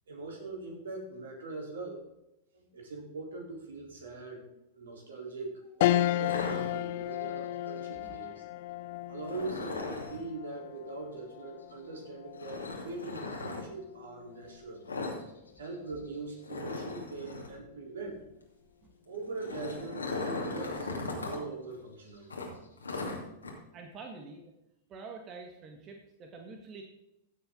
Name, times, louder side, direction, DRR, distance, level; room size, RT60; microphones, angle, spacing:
voice 1, 0.1-2.0 2.5-4.4 4.7-8.4 9.1-14.8 15.6-18.2 19.1-22.3, right 3 dB, 75° right, 0 dB, 4.2 m, -42 dB
sound 1, 5.8-15.4 15.9-16.0 17.3-17.8, left 14 dB, 60° left, 0.4 m, -35 dB
sound 2, 6.2-7.2 9.2-10.2 12.4-13.6 14.9-15.2 15.5-15.7 16.0-16.1 16.4-17.6 19.1-21.4 21.7-21.8 22.3-23.5, left 3 dB, 90° left, 2.6 m, -37 dB
voice 2, 23.7-24.5 24.9-26.8, right 4 dB, 35° right, 3 dB, 1.8 m, -46 dB
15.5 x 7.5 x 4.0 m, 0.88 s
hypercardioid pair, 100°, 0 cm